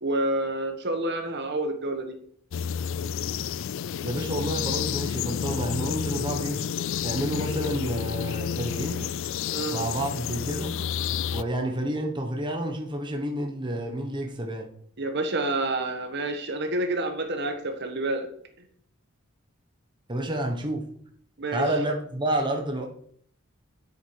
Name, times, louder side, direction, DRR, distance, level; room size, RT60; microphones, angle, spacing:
voice 1, 0.0-2.1 9.5-9.8 15.0-18.3 21.4-21.6, right 2 dB, 55° right, 7 dB, 1.3 m, -28 dB
sound 1, 2.5-11.4, left 8 dB, 60° left, 0.3 m, -30 dB
voice 2, 4.0-6.6 7.0-9.1 9.7-10.7 11.3-14.7 20.1-20.8 21.5-22.9, right 1 dB, 20° right, 2 dB, 1.2 m, -29 dB
10.0 x 8.0 x 4.7 m, 0.62 s
head